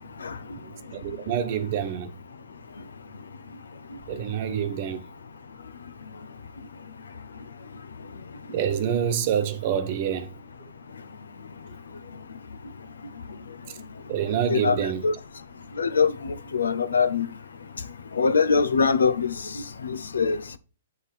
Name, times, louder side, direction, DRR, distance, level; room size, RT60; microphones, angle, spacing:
voice 1, 0.2-0.6 3.9-4.0 8.5-8.6 13.3-13.4 14.5-15.1 15.7-17.3 18.1-20.6, left 5 dB, 85° left, 0.8 m, -24 dB
voice 2, 0.9-2.1 4.1-5.0 8.5-10.3 14.1-15.0, right 9 dB, 50° right, 1.2 m, -26 dB
8.7 x 5.4 x 4.2 m
hypercardioid pair, 130°, 0 cm